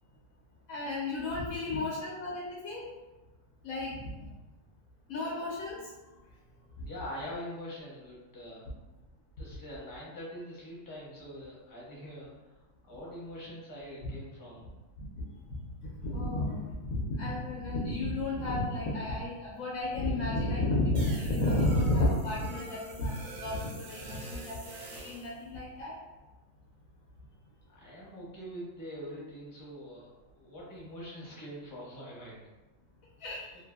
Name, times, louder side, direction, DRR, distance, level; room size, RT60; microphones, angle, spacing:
voice 1, 0.7-2.9 3.6-3.9 5.1-5.8 15.8-16.6 16.9-23.1 23.4-25.9 33.2-33.4, left 1 dB, 90° left, -5 dB, 1.0 m, -32 dB
voice 2, 6.8-8.7 9.4-12.3 12.8-14.7 27.7-32.4, equal, 25° left, -6 dB, 0.5 m, -44 dB
sound 1, 20.9-25.3, right 1 dB, 60° right, 0.8 m, -46 dB
2.6 x 2.5 x 2.3 m, 1.1 s
omnidirectional pair, 1.4 m